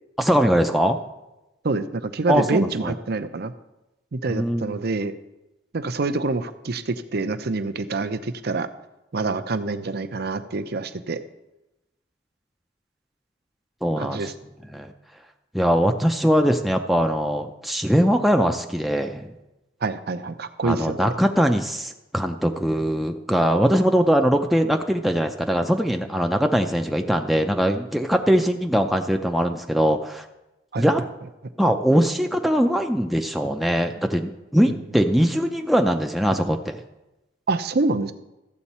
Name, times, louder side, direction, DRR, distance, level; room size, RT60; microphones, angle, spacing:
voice 1, 0.2-1.0 2.3-2.9 4.3-4.8 13.8-14.2 14.7-14.9 15.5-19.3 20.6-30.3 30.8-31.0 31.6-36.8, equal, ahead, 3 dB, 0.5 m, -21 dB
voice 2, 1.6-3.5 4.1-5.1 5.7-8.7 9.1-11.2 14.0-14.3 19.8-21.1 30.7-30.9 37.5-38.1, right 3 dB, 60° right, 11 dB, 0.6 m, -26 dB
13.5 x 8.0 x 4.2 m, 0.97 s
head